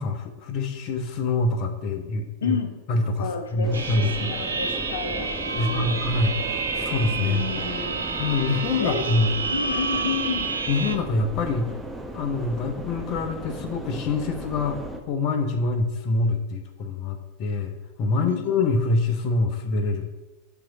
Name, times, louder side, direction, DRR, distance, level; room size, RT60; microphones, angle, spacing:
voice 1, 0.0-2.6 2.9-4.3 5.5-6.4 6.8-7.4 8.2-9.3 10.7-11.7 12.1-20.1, left 3 dB, 45° left, 6 dB, 0.8 m, -25 dB
voice 2, 2.4-2.8 3.2-6.0 7.2-8.3 8.8-9.1 9.5-10.6 18.2-18.5, left 5 dB, 80° left, 5 dB, 0.9 m, -31 dB
sound 1, 3.6-15.0, right 1 dB, 10° right, 0.9 m, -36 dB
sound 2, 3.7-11.0, right 4 dB, 85° right, 0.6 m, -29 dB
8.4 x 3.2 x 6.0 m, 1.1 s
hypercardioid pair, 90°, 0 cm